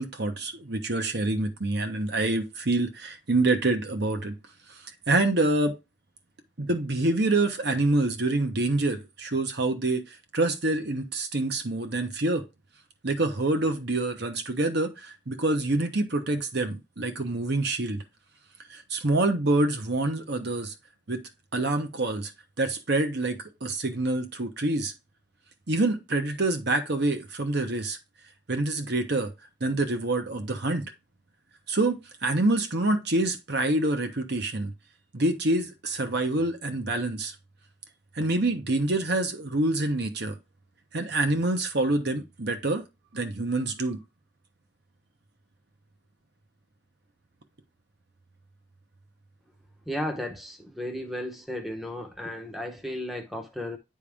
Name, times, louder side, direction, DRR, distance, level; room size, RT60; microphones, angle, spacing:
voice 1, 0.0-4.4 5.1-5.8 6.6-12.4 13.0-18.0 18.7-20.7 21.1-21.2 21.5-22.3 22.6-24.9 25.7-28.0 28.5-29.3 29.6-30.9 31.7-34.7 35.1-37.3 38.1-40.4 40.9-42.8 43.1-44.0, right 2 dB, 55° right, 1.1 m, -26 dB
voice 2, 49.9-53.8, left 1 dB, ahead, 0.8 m, -34 dB
9.9 x 3.5 x 3.5 m
head